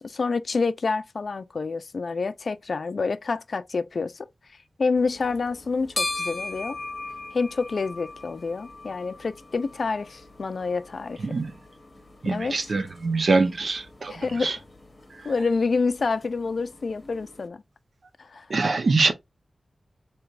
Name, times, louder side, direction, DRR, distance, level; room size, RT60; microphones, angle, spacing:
voice 1, 0.0-4.3 4.8-6.8 7.3-11.3 12.2-12.6 14.1-14.5 15.2-17.6 18.2-18.5, left 4 dB, 65° left, 0.3 m, -28 dB
sound 1, 5.0-17.5, left 2 dB, 30° left, 0.9 m, -39 dB
voice 2, 12.2-14.5 18.5-19.1, right 3 dB, 65° right, 0.7 m, -24 dB
4.6 x 2.9 x 2.4 m
wide cardioid pair, 105°, 0 cm